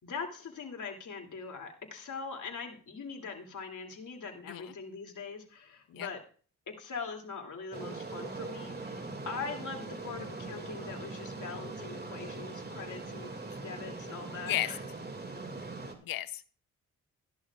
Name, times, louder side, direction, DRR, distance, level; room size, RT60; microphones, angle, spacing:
voice 1, 0.0-6.2 6.7-13.3 13.6-14.8, left 5 dB, 55° left, 2 dB, 2.8 m, -42 dB
sound 1, 7.7-15.9, right 3 dB, 30° right, 2.3 m, -41 dB
voice 2, 16.0-16.5, left 13 dB, 70° left, 16 dB, 0.7 m, -34 dB
15.0 x 11.0 x 2.4 m, 0.41 s
supercardioid pair, 45°, 35 cm